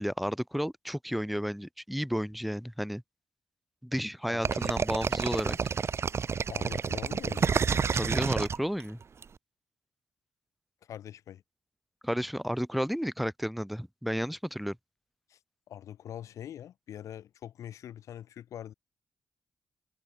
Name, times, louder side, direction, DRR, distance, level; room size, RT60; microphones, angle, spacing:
voice 1, 0.0-3.0 3.8-5.6 7.9-9.0 12.0-14.8, equal, ahead, 2.1 m, -32 dB
voice 2, 4.3-4.8 6.5-7.5 10.8-11.4 15.3-15.4 15.7-18.7, left 10 dB, 75° left, 7.3 m, -43 dB
sound 1, 4.4-9.2, right 6 dB, 55° right, 2.7 m, -29 dB
supercardioid pair, 45°, 5 cm